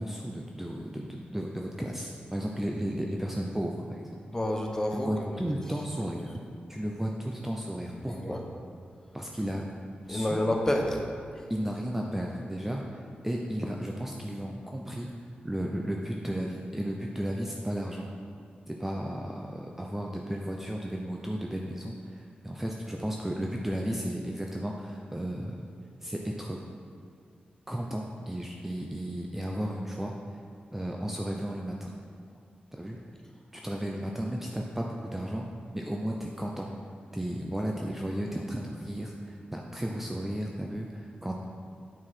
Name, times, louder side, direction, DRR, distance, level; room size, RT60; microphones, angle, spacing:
voice 1, 0.0-4.0 4.9-6.4 6.7-8.4 9.1-9.6 10.1-10.4 11.5-15.1 15.4-18.1 18.7-25.7 26.0-26.6 27.7-30.1 30.7-31.9 32.7-33.0 33.5-35.5 35.7-36.7 37.1-41.3, equal, 10° right, -1 dB, 0.5 m, -34 dB
voice 2, 4.3-5.4 8.1-8.5 10.1-11.0 11.3-11.5, left 1 dB, 15° left, 1 dB, 0.8 m, -29 dB
8.8 x 4.6 x 4.2 m, 2.3 s
wide cardioid pair, 135°, 3 cm